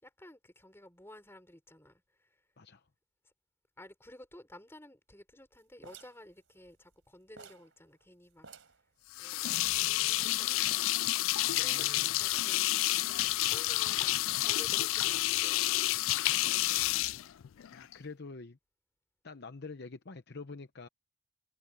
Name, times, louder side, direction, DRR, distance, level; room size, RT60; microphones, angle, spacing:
voice 1, 0.0-2.3 3.8-8.5 9.2-10.9 11.2-12.8 13.0-17.3, left 1 dB, 10° left, 6.2 m, -54 dB
sound 1, 5.8-7.0 7.4-7.7 8.0-8.1 8.4-8.8 9.5-10.3 10.7-11.2, right 5 dB, 60° right, 5.1 m, -54 dB
sound 2, 9.1-17.9, left 17 dB, 65° left, 0.3 m, -30 dB
voice 2, 11.4-12.3 17.7-18.6 19.2-20.9, left 4 dB, 50° left, 0.8 m, -46 dB
head